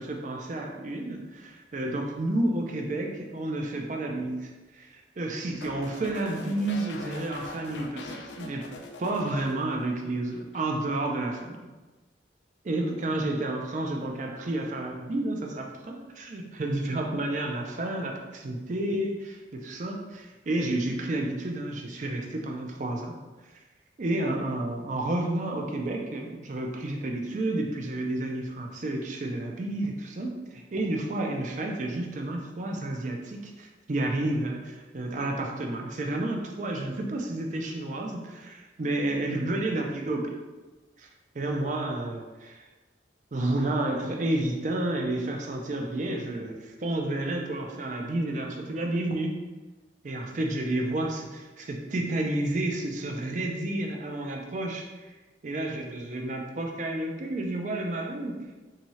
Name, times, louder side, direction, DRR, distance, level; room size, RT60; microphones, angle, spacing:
voice 1, 0.0-8.7 9.0-11.7 12.6-23.2 24.0-40.4 41.0-41.1 41.3-42.7 43.3-49.4 50.0-54.9 55.4-58.5, right 1 dB, 40° right, 2 dB, 0.4 m, -31 dB
sound 1, 5.6-10.1 10.3-10.7, left 3 dB, 80° left, 0.4 m, -43 dB
3.5 x 2.8 x 3.1 m, 1.2 s
head